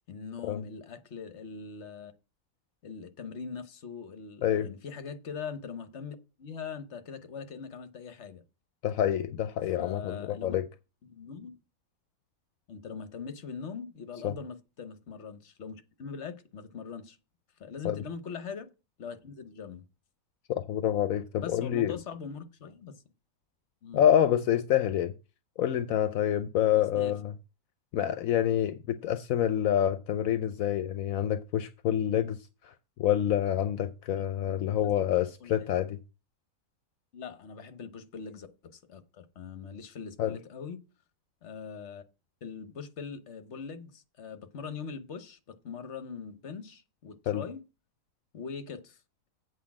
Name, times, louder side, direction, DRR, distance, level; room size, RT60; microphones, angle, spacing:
voice 1, 0.1-2.1 2.8-8.4 9.8-10.6 11.1-11.5 12.7-17.2 17.6-18.7 19.0-19.8 21.4-22.9 23.8-24.0 26.9-27.1 34.8-35.1 35.4-35.7 37.1-40.8 41.4-42.0 42.4-47.6 48.3-49.0, left 6 dB, 55° left, 1.3 m, -41 dB
voice 2, 8.8-10.7 14.2-14.3 17.8-18.0 20.5-21.9 23.9-25.1 25.6-27.3 27.9-32.4 32.6-32.7 33.0-36.0 40.2-40.4 47.3-47.4, left 10 dB, 75° left, 1.1 m, -27 dB
8.3 x 4.7 x 7.3 m
omnidirectional pair, 1.5 m